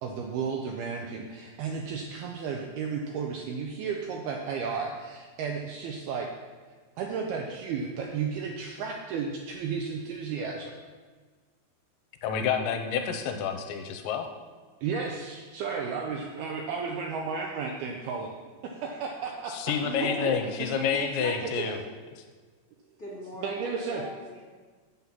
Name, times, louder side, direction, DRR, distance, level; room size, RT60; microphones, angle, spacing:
voice 1, 0.0-6.3 7.0-10.7 14.8-18.3 18.6-21.8 23.4-24.0, right 5 dB, 80° right, 1 dB, 2.2 m, -33 dB
voice 2, 12.2-14.3 19.5-21.8, left 7 dB, 80° left, 6 dB, 3.1 m, -29 dB
voice 3, 23.0-24.4, left 1 dB, 40° left, -7 dB, 1.3 m, -41 dB
9.4 x 7.6 x 5.7 m, 1.4 s
omnidirectional pair, 5.3 m